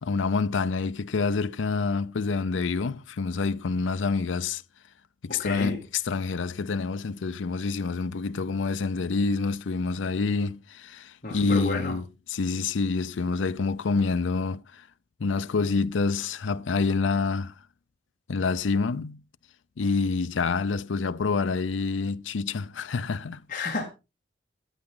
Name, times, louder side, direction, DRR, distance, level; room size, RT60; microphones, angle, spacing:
voice 1, 0.0-4.6 5.2-14.9 15.2-17.5 18.3-19.2 19.8-23.4, left 4 dB, 80° left, 0.5 m, -27 dB
voice 2, 5.4-5.8 11.2-12.0 23.5-23.9, left 3 dB, 40° left, 2.5 m, -31 dB
14.5 x 8.7 x 3.8 m
head